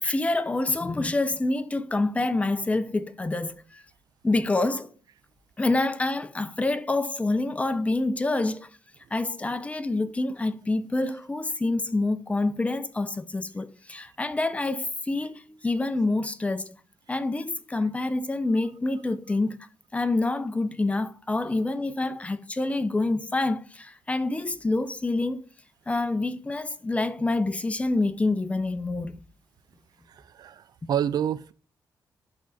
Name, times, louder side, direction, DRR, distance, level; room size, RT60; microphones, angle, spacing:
voice 1, 0.0-3.8 4.2-4.9 5.6-8.7 9.1-16.8 17.1-19.7 19.9-25.4 25.9-29.2, left 2 dB, 20° left, 0.6 m, -27 dB
voice 2, 30.1-31.5, right 9 dB, 65° right, 0.3 m, -29 dB
11.5 x 3.8 x 2.4 m
cardioid pair, 100°, 7 cm